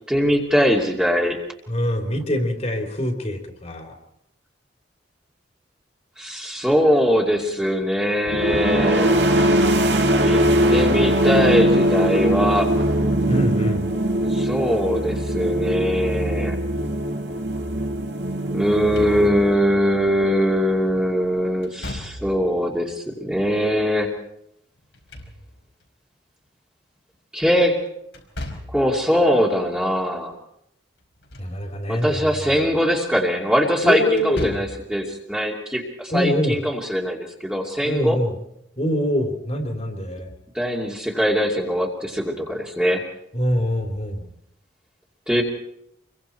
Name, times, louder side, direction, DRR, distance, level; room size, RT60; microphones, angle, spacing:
voice 1, 0.1-1.4 6.2-9.2 10.2-10.4 10.7-12.7 14.3-16.6 18.5-24.1 27.3-27.8 28.7-30.3 31.9-38.2 40.5-43.0 45.3-45.4, equal, 5° right, -1 dB, 2.6 m, -21 dB
voice 2, 1.7-4.0 13.3-13.9 31.4-32.8 33.8-34.5 36.1-36.6 37.8-38.4 38.8-40.3 43.3-44.3, equal, 35° left, 3 dB, 3.3 m, -24 dB
sound 1, 8.3-19.8, right 1 dB, 70° right, 2.2 m, -21 dB
Slam / Thump thud, 18.7-19.6 21.6-22.5 24.8-25.8 28.1-28.9 31.0-31.6 32.0-32.1 34.1-34.9, left 1 dB, 85° left, 4.9 m, -36 dB
27.5 x 23.0 x 4.5 m, 0.79 s
head